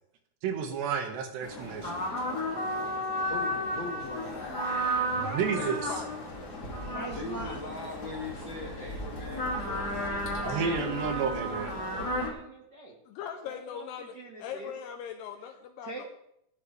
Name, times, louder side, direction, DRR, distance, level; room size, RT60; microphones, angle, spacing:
voice 1, 0.4-2.0 5.1-5.9 10.5-11.7, right 6 dB, 80° right, 4 dB, 3.8 m, -31 dB
sound 1, 1.4-12.3, equal, 30° left, 2.4 m, -33 dB
voice 2, 3.3-4.5 5.6-5.8 7.1-10.7, left 3 dB, 60° left, -1 dB, 1.2 m, -41 dB
voice 3, 5.2-5.5 6.5-7.6 10.4-13.0 13.5-14.7 15.8-16.0, right 2 dB, 45° right, -3 dB, 1.3 m, -43 dB
voice 4, 13.1-14.1 14.4-16.0, left 8 dB, 80° left, 5 dB, 2.9 m, -40 dB
18.0 x 12.5 x 3.4 m, 0.76 s
omnidirectional pair, 4.9 m